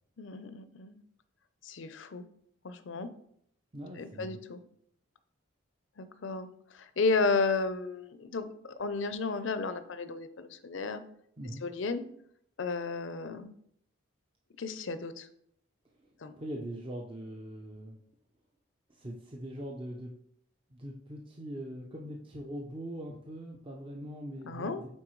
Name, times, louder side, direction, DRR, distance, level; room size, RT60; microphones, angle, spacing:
voice 1, 0.2-1.0 1.6-2.2 2.6-3.1 4.0-4.6 6.0-11.0 11.6-12.0 12.6-13.5 14.6-15.3 16.2-16.3 24.4-24.8, left 4 dB, 65° left, 11 dB, 0.5 m, -33 dB
voice 2, 3.7-4.4 11.4-11.6 16.0-18.0 18.9-20.1 20.7-24.8, equal, 25° right, 0 dB, 0.6 m, -42 dB
8.8 x 4.0 x 3.1 m, 0.69 s
head